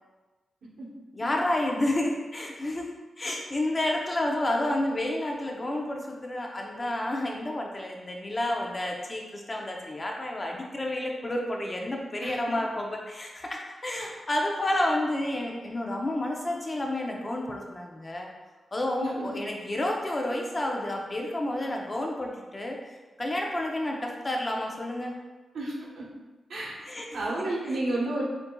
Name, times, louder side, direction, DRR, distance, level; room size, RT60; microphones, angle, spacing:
voice 1, 1.1-2.9 3.2-18.3 18.7-25.1 26.8-27.3 27.6-27.8, left 1 dB, 25° left, 0 dB, 0.6 m, -30 dB
voice 2, 25.5-26.0 26.5-26.7 27.1-28.2, right 2 dB, 85° right, -4 dB, 1.0 m, -31 dB
6.9 x 2.6 x 2.3 m, 1.2 s
wide cardioid pair, 115°, 0 cm